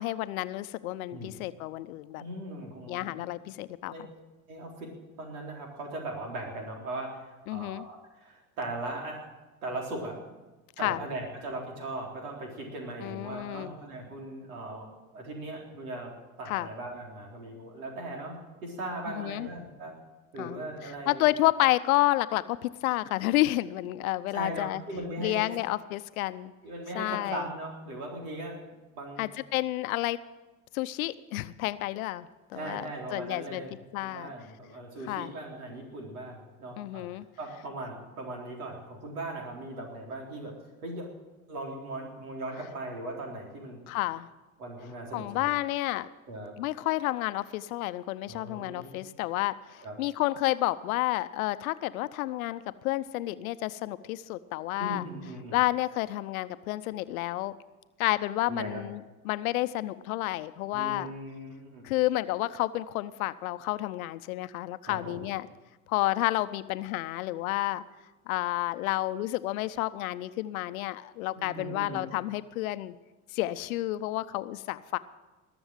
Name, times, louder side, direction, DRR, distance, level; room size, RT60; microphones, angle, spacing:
voice 1, 0.0-2.2 2.9-4.1 7.5-7.8 10.8-11.0 13.0-13.7 16.5-16.7 19.1-19.5 20.4-24.8 25.2-26.5 26.9-27.4 29.2-30.2 30.7-32.8 33.1-33.6 33.9-34.3 35.1-35.3 36.8-37.2 43.9-44.3 45.1-46.1 46.6-55.0 55.5-57.5 58.0-61.1 61.8-65.5 65.9-67.8 68.3-72.9 73.3-75.0, left 17 dB, 75° left, 14 dB, 0.8 m, -30 dB
voice 2, 2.2-3.2 3.8-4.1 4.5-4.9 5.2-9.3 9.6-10.2 10.8-14.9 15.1-16.1 16.4-20.0 20.3-21.2 24.3-25.6 26.6-28.6 29.0-29.3 32.5-33.7 34.0-40.6 40.8-41.1 41.5-43.8 44.6-45.5 46.3-46.6 48.3-49.0 49.8-50.0 54.8-55.6 58.5-58.9 60.7-61.9 64.8-65.3 71.4-72.1, right 2 dB, 80° right, 0 dB, 4.1 m, -39 dB
21.0 x 7.1 x 9.0 m, 1.1 s
hypercardioid pair, 70°, 43 cm